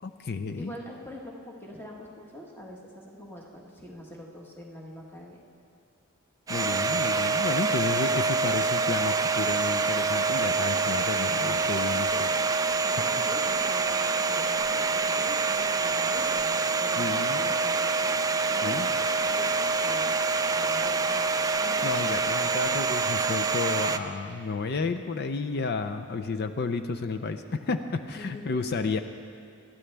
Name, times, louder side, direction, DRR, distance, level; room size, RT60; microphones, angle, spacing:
voice 1, 0.0-0.7 6.5-12.3 13.0-13.1 17.0-17.5 18.6-18.9 21.8-29.0, left 4 dB, 45° left, 8 dB, 0.5 m, -31 dB
voice 2, 0.6-5.4 11.6-12.2 12.8-17.1 17.4-18.2 18.5-20.2 20.5-21.9 28.1-28.6, left 1 dB, 10° left, -2 dB, 1.3 m, -44 dB
Domestic sounds home sounds, 6.5-24.0, right 4 dB, 15° right, 0.3 m, -26 dB
21.0 x 12.5 x 3.4 m, 2.3 s
head